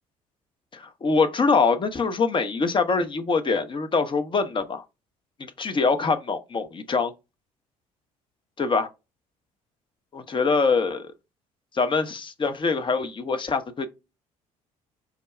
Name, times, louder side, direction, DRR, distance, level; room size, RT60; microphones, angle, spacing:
voice 1, 0.7-4.8 5.4-7.1 8.6-8.9 10.1-11.1 11.7-13.9, left 4 dB, 25° left, 0.7 m, -24 dB
4.8 x 2.2 x 3.1 m
figure-of-eight pair, 50°, 18 cm